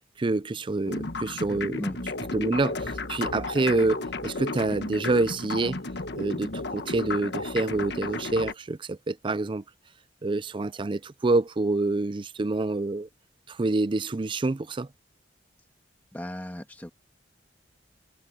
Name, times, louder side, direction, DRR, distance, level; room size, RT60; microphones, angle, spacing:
voice 1, 0.2-1.8 2.3-5.8 6.2-9.6 10.2-13.1 13.5-14.9, right 2 dB, 25° right, 0.4 m, -27 dB
sound 1, 0.9-8.5, left 3 dB, 65° left, 1.4 m, -33 dB
voice 2, 16.1-16.9, equal, 10° left, 2.0 m, -36 dB
head